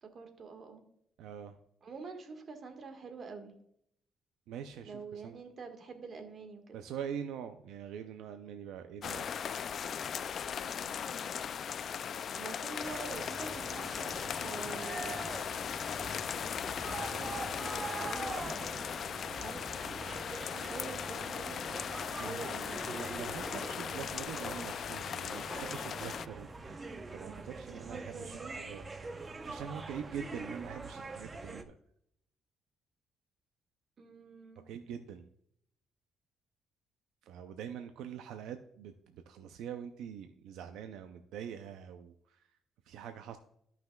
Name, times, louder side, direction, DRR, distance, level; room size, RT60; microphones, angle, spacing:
voice 1, 0.0-0.8 1.8-3.6 4.8-6.8 10.6-11.3 12.3-15.2 17.0-18.4 19.4-19.9 20.5-21.7 22.2-22.9 27.6-28.8 34.0-34.7, right 4 dB, 50° right, 6 dB, 1.6 m, -46 dB
voice 2, 1.2-1.6 4.5-5.4 6.7-9.3 19.1-19.5 22.2-22.6 22.9-31.7 34.7-35.3 37.2-42.5 42.8-43.4, right 8 dB, 90° right, 8 dB, 0.5 m, -44 dB
sound 1, 9.0-26.3, left 8 dB, 60° left, 0.3 m, -38 dB
sound 2, 12.8-31.6, right 3 dB, 30° right, 0.7 m, -44 dB
14.0 x 5.8 x 2.3 m, 0.71 s
cardioid pair, 90°, 0 cm